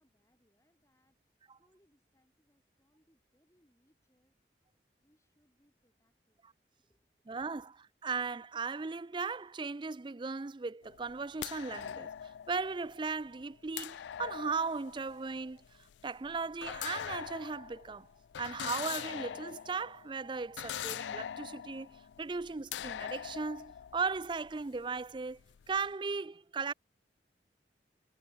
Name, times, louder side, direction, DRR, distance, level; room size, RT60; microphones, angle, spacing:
voice 1, 0.0-4.7 5.0-6.5 6.8-7.1, equal, 15° left, 7.5 m, -74 dB
voice 2, 7.3-12.1 12.5-15.6 16.0-18.1 18.4-25.4 25.7-26.7, right 4 dB, 25° right, 0.4 m, -37 dB
sound 1, 10.8-25.0 25.3-25.8, left 9 dB, 90° left, 0.4 m, -43 dB
head